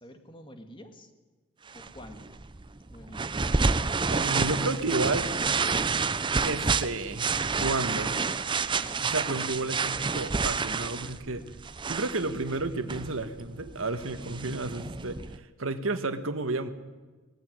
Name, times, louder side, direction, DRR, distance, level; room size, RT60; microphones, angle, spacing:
voice 1, 0.0-1.1 1.7-2.4 2.9-3.5 9.5-9.7, left 1 dB, 25° left, 6 dB, 1.9 m, -48 dB
sound 1, 1.7-15.4, right 4 dB, 25° right, 0.6 m, -29 dB
voice 2, 4.1-5.3 6.4-7.3 7.6-8.2 9.0-11.4 11.9-15.2 15.6-16.7, right 2 dB, 75° right, 10 dB, 1.5 m, -31 dB
19.5 x 15.0 x 9.6 m, 1.3 s
head